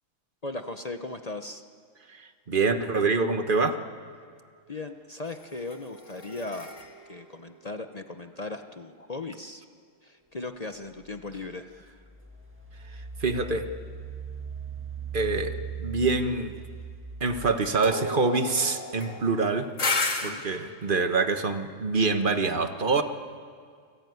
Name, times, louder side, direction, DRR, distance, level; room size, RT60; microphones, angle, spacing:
voice 1, 0.4-1.6 4.7-6.7 7.1-9.6 10.0-11.6 20.2-20.4, left 2 dB, 55° left, 7 dB, 0.4 m, -37 dB
voice 2, 2.1-3.8 13.2-13.7 15.1-15.5 15.8-16.5 17.2-19.7 20.2-23.0, right 4 dB, 30° right, 7 dB, 1.2 m, -25 dB
sound 1, 5.3-8.7 17.8-20.3, left 3 dB, 35° left, 2.4 m, -34 dB
Engine, 11.8-17.8, right 7 dB, 5° right, 1.5 m, -39 dB
29.0 x 20.5 x 9.5 m, 2.1 s
omnidirectional pair, 2.2 m